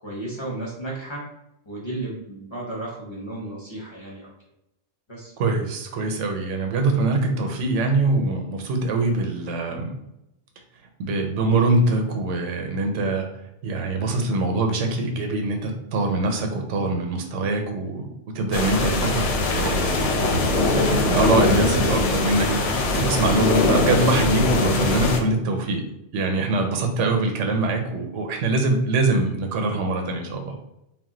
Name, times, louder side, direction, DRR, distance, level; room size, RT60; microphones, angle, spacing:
voice 1, 0.0-1.2 1.7-4.3 5.1-5.3 24.8-25.0, right 2 dB, 35° left, -6 dB, 0.5 m, -33 dB
voice 2, 5.4-10.0 11.0-13.3 13.6-18.1 18.3-20.1 20.7-25.8 26.1-30.5, right 2 dB, 90° right, 4 dB, 0.9 m, -23 dB
sound 1, 18.5-25.2, left 2 dB, 90° left, 0.9 m, -21 dB
2.3 x 2.1 x 3.7 m, 0.87 s
omnidirectional pair, 1.2 m